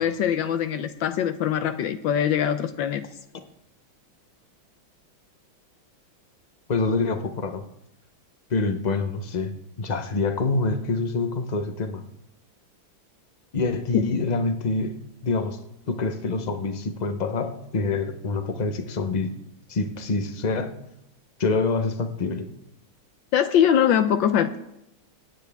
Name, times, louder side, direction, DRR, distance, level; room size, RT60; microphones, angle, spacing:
voice 1, 0.0-3.1 13.9-14.1 23.3-24.6, left 9 dB, 75° left, 10 dB, 1.3 m, -22 dB
voice 2, 6.7-7.6 8.5-9.5 9.8-12.0 13.5-15.6 15.9-19.3 19.7-20.8 21.4-22.5, left 3 dB, 55° left, 8 dB, 0.4 m, -26 dB
24.0 x 9.4 x 3.5 m, 0.86 s
omnidirectional pair, 2.2 m